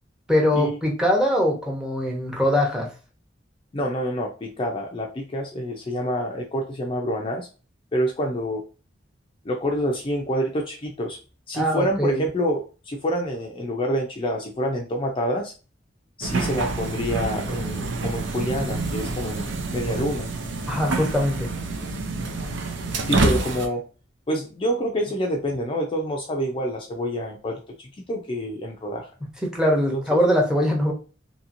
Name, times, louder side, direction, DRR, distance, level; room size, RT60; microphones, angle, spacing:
voice 1, 0.3-2.9 11.5-12.2 20.7-21.5 29.4-30.9, equal, 5° right, -1 dB, 0.8 m, -22 dB
voice 2, 3.7-7.5 7.9-8.6 9.4-11.2 11.5-15.5 16.2-20.3 23.1-23.9 24.3-27.6 28.1-29.1 29.9-30.0, equal, 30° left, 1 dB, 0.4 m, -27 dB
sound 1, 16.2-23.7, right 3 dB, 70° right, 0.5 m, -27 dB
2.8 x 2.8 x 2.5 m, 0.34 s
head